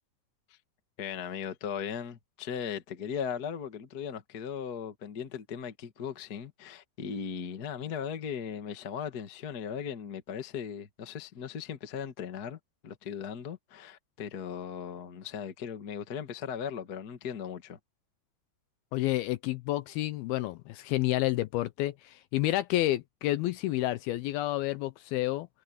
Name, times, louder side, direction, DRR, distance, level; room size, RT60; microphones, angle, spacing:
voice 1, 1.0-17.8, left 7 dB, 60° left, 1.0 m, -38 dB
voice 2, 18.9-25.5, left 16 dB, 80° left, 2.3 m, -30 dB
omnidirectional pair, 4.8 m